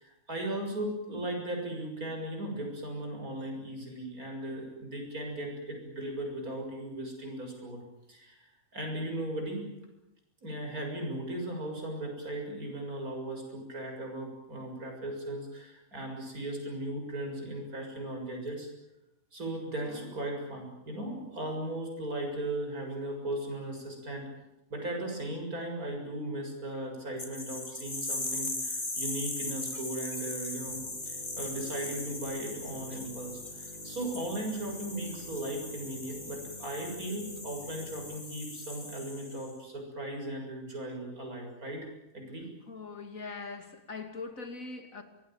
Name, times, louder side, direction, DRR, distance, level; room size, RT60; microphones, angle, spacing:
voice 1, 0.0-7.8 8.1-8.4 8.7-9.7 10.4-18.7 19.3-24.3 24.7-41.9 42.1-42.5, right 1 dB, 80° right, 7.4 m, -37 dB
sound 1, 27.2-39.5, left 2 dB, 35° left, 3.3 m, -39 dB
sound 2, 30.6-38.2, equal, 40° right, 4.0 m, -50 dB
voice 2, 42.7-45.0, left 4 dB, 65° left, 3.1 m, -41 dB
25.0 x 20.0 x 9.0 m
omnidirectional pair, 1.5 m